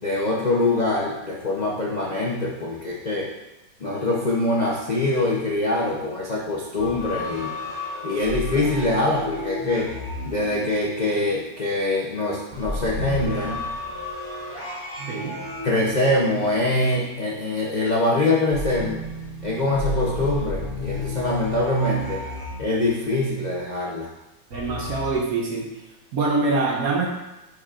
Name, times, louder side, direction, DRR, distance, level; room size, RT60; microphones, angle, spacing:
voice 1, 0.0-3.3 3.8-7.6 8.0-9.9 10.2-13.7 15.6-19.0 19.4-22.2 22.6-24.1, left 2 dB, 75° left, -4 dB, 0.4 m, -24 dB
sound 1, 6.7-11.4 12.5-17.3 18.5-23.2 24.5-25.1, left 2 dB, 30° left, 2.3 m, -33 dB
voice 2, 24.5-25.7 26.1-27.1, right 3 dB, 60° right, 1 dB, 1.0 m, -24 dB
9.9 x 4.8 x 2.5 m, 0.98 s
omnidirectional pair, 2.1 m